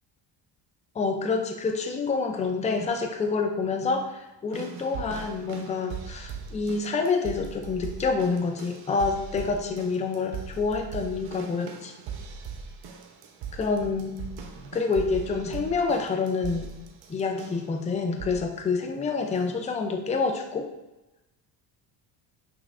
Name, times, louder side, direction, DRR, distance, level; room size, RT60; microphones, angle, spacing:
voice 1, 0.9-11.9 13.6-14.2 14.7-16.7 17.1-20.7, left 4 dB, 15° left, 4 dB, 0.4 m, -27 dB
sound 1, 4.5-17.8 18.2-18.6 19.3-19.4, right 6 dB, 90° right, 0.7 m, -40 dB
6.0 x 3.1 x 2.5 m, 0.98 s
cardioid pair, 115°, 43 cm